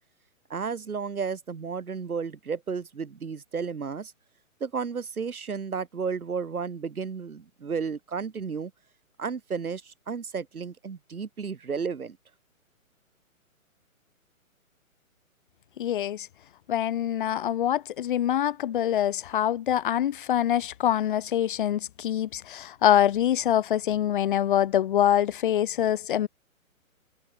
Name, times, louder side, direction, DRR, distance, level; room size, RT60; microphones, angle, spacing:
voice 1, 0.5-4.1 4.6-8.7 9.2-12.2, right 5 dB, 90° right, 5.2 m, -33 dB
voice 2, 15.8-16.3 16.7-26.3, left 11 dB, 35° left, 1.5 m, -25 dB
open air
hypercardioid pair, 160°, 42 cm